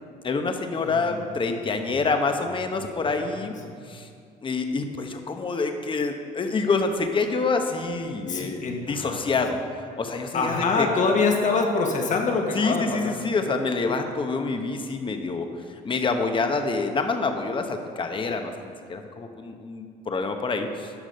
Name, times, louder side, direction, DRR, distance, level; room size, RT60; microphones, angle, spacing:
voice 1, 0.2-3.5 3.9-4.1 4.4-9.6 10.0-10.9 12.5-15.5 15.8-20.9, left 4 dB, 30° left, 6 dB, 0.9 m, -27 dB
voice 2, 0.8-1.3 3.2-3.5 3.8-3.9 8.2-9.2 10.3-13.2, left 4 dB, 50° left, 2 dB, 1.5 m, -25 dB
11.5 x 6.0 x 5.4 m, 2.3 s
cardioid pair, 110°, 17 cm